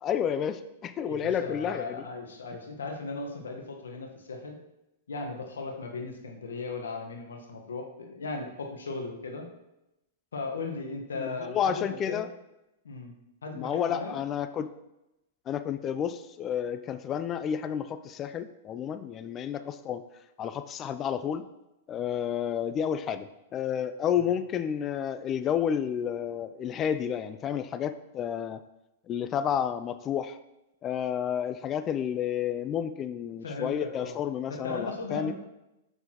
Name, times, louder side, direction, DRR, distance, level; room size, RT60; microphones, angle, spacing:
voice 1, 0.0-2.0 11.2-12.3 13.5-14.7 15.5-20.0 20.4-21.5 21.9-28.6 29.1-30.4 30.8-35.3, left 8 dB, 30° left, 12 dB, 0.3 m, -31 dB
voice 2, 1.1-4.6 5.1-9.5 10.3-12.3 12.8-13.1 13.4-14.2 33.4-34.2 34.5-35.3, left 3 dB, 85° left, 3 dB, 1.1 m, -37 dB
6.9 x 6.1 x 2.9 m, 0.92 s
hypercardioid pair, 120°, 0 cm